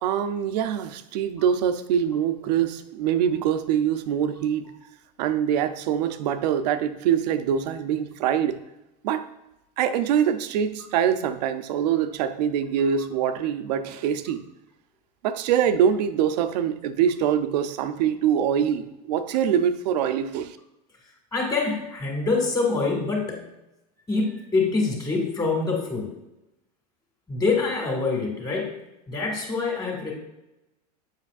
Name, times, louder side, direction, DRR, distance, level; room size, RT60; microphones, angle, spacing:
voice 1, 0.0-4.7 5.2-8.6 9.0-9.2 9.8-14.4 15.2-20.6, right 8 dB, 75° right, 11 dB, 0.6 m, -24 dB
voice 2, 21.3-23.5 24.1-26.1 27.3-28.7 29.1-30.1, left 3 dB, 15° left, -1 dB, 2.1 m, -25 dB
7.3 x 6.2 x 2.5 m, 0.91 s
supercardioid pair, 125°, 21 cm